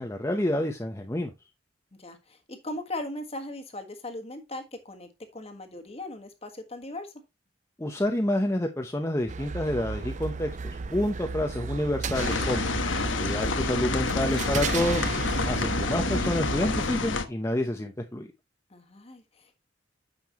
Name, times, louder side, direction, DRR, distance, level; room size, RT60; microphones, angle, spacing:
voice 1, 0.0-1.3 7.8-10.5 10.9-12.7 13.2-15.1 15.4-18.3, left 1 dB, 15° left, 0.7 m, -28 dB
voice 2, 2.0-7.1 18.7-19.6, left 1 dB, 30° left, 1.5 m, -39 dB
sound 1, 9.3-16.8, right 4 dB, 40° right, 0.5 m, -33 dB
sound 2, 12.1-17.2, left 3 dB, 80° left, 1.1 m, -29 dB
9.4 x 6.8 x 2.9 m
head